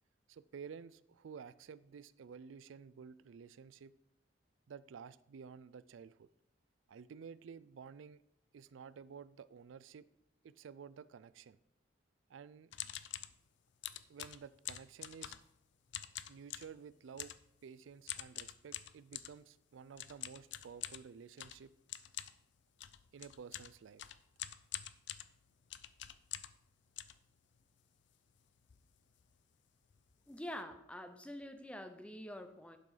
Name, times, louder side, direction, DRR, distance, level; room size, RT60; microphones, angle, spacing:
voice 1, 0.3-3.9 4.7-6.3 6.9-8.2 8.5-10.1 10.4-11.6 12.3-12.7 14.1-15.4 16.3-17.3 17.6-21.7 23.1-24.1, right 6 dB, 85° right, 17 dB, 0.4 m, -52 dB
sound 1, 12.7-13.4 13.8-15.6 15.9-16.8 17.2-17.5 18.1-19.4 20.0-26.6 27.0-27.8 28.3-28.4 28.6-28.9 29.1-29.3 29.9-30.0 30.3-30.5, left 12 dB, 65° left, 0.5 m, -46 dB
voice 2, 30.3-32.8, left 1 dB, 5° left, 8 dB, 0.6 m, -46 dB
11.0 x 5.9 x 5.0 m, 0.77 s
head